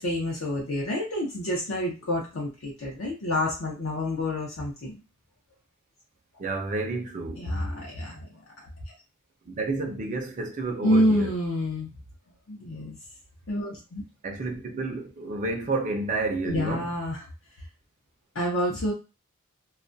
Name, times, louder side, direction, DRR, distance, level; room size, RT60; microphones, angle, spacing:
voice 1, 0.0-5.0 7.4-8.4 10.8-11.9 12.5-13.0 13.5-14.0 16.4-17.3 18.3-18.9, left 1 dB, 70° left, 0.6 m, -28 dB
voice 2, 6.4-7.4 9.5-11.3 14.2-16.9, right 3 dB, 35° right, 0.4 m, -30 dB
2.3 x 2.1 x 2.5 m
head